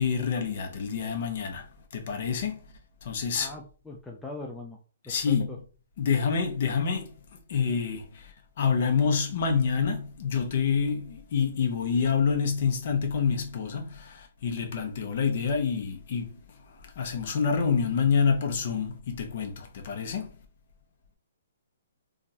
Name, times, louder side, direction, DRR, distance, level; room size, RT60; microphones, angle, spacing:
voice 1, 0.0-1.7 1.9-2.6 3.0-3.5 5.1-5.6 6.0-7.1 7.5-16.4 16.8-20.3, left 6 dB, 45° left, 1.0 m, -27 dB
voice 2, 3.3-4.8 5.0-5.6, left 2 dB, 5° left, 0.4 m, -41 dB
3.7 x 2.4 x 2.8 m
hypercardioid pair, 165°, 0 cm